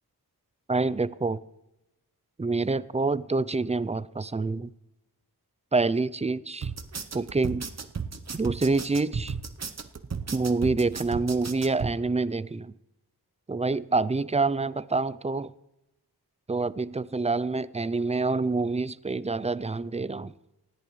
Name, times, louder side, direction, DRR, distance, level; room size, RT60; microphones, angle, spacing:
voice 1, 0.7-1.4 2.4-4.7 5.7-6.7 7.1-7.7 8.4-9.3 10.3-12.7 13.5-15.5 16.5-20.3, right 3 dB, 20° right, 0.4 m, -27 dB
sound 1, 6.6-11.9, right 5 dB, 40° right, 0.8 m, -34 dB
19.0 x 14.0 x 3.2 m
wide cardioid pair, 80°, 39 cm